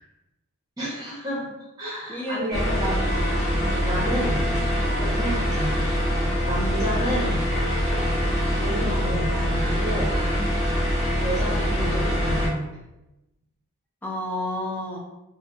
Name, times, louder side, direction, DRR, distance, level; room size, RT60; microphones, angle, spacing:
voice 1, 0.8-1.5 1.8-3.0 3.8-4.5 5.0-5.8 6.4-7.5 8.5-10.1 11.2-12.7, equal, 20° right, -8 dB, 0.8 m, -30 dB
voice 2, 2.1-2.7 3.6-3.8 10.4-10.6 14.0-15.0, left 1 dB, 10° left, -2 dB, 0.3 m, -31 dB
sound 1, 2.5-12.5, equal, 30° left, 0.9 m, -24 dB
2.6 x 2.1 x 2.3 m, 0.95 s
head